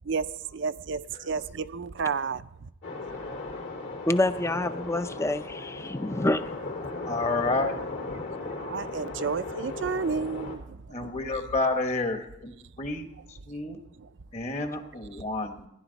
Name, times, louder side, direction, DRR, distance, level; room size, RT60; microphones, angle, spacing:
voice 1, 0.0-2.7 8.6-11.1 14.0-14.1, right 5 dB, 65° right, 0.5 m, -31 dB
sound 1, 2.8-10.6, left 3 dB, 70° left, 3.8 m, -37 dB
voice 2, 4.1-6.5, left 2 dB, 15° left, 0.5 m, -27 dB
voice 3, 7.0-7.8 10.9-13.8 14.3-15.7, left 3 dB, 35° left, 1.3 m, -30 dB
16.0 x 11.0 x 4.0 m
head